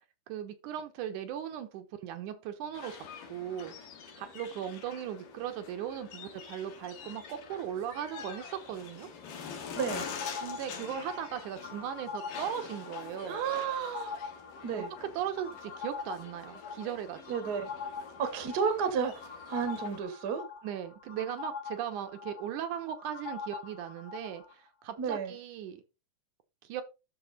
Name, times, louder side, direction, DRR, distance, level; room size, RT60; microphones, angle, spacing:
voice 1, 0.3-3.7 4.2-9.1 10.4-13.4 14.7-17.5 20.6-25.8 26.6-26.8, right 10 dB, 75° right, 2.4 m, -38 dB
sound 1, 2.7-20.0, left 6 dB, 85° left, 3.3 m, -46 dB
voice 2, 9.7-10.1 13.3-14.2 14.6-14.9 17.3-17.7 18.2-20.4 25.0-25.3, right 6 dB, 45° right, 1.3 m, -32 dB
sound 2, 9.8-24.5, left 6 dB, 50° left, 2.2 m, -44 dB
12.0 x 4.3 x 4.1 m
omnidirectional pair, 3.7 m